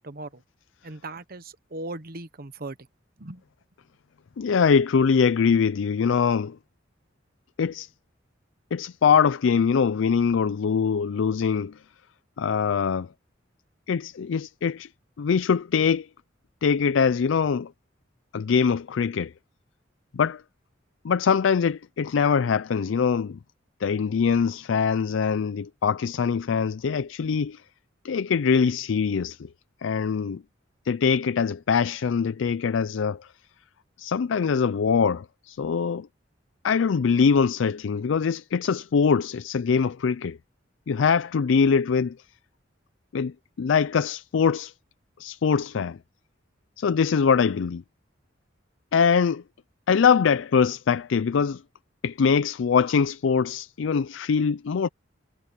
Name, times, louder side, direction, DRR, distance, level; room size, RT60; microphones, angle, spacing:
voice 1, 0.0-0.4 0.8-2.8 3.2-3.4, right 2 dB, 50° right, 1.2 m, -38 dB
voice 2, 4.4-6.6 7.6-7.9 8.7-11.7 12.4-13.1 13.9-14.9 15.2-16.1 16.6-17.7 18.3-19.3 20.1-20.4 21.0-23.4 23.8-27.6 28.0-29.5 29.8-30.4 30.9-33.3 34.0-36.1 36.6-40.4 40.9-42.2 43.1-44.7 45.2-46.0 46.8-47.8 48.9-49.4 49.9-51.6 52.0-54.9, left 6 dB, 75° left, 0.4 m, -23 dB
head